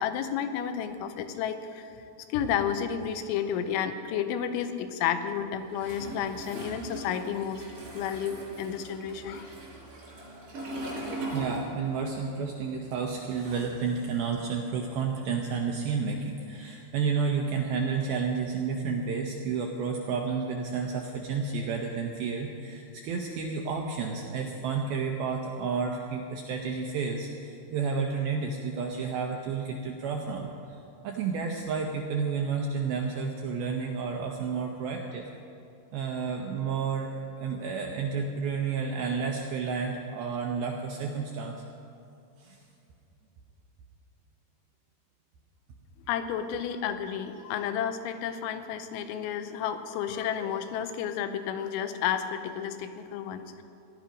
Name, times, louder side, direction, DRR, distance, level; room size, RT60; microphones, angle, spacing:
voice 1, 0.0-1.9 2.3-7.6 7.9-9.5 46.1-53.5, left 8 dB, 90° left, 9 dB, 3.2 m, -31 dB
Toilet flush, 5.7-12.2 12.4-14.0, right 1 dB, 50° right, 5.4 m, -40 dB
voice 2, 11.3-35.3 35.9-41.6 42.4-42.6, right 5 dB, 80° right, 1 dB, 2.2 m, -31 dB
16.5 x 11.5 x 5.1 m, 2.7 s
omnidirectional pair, 5.3 m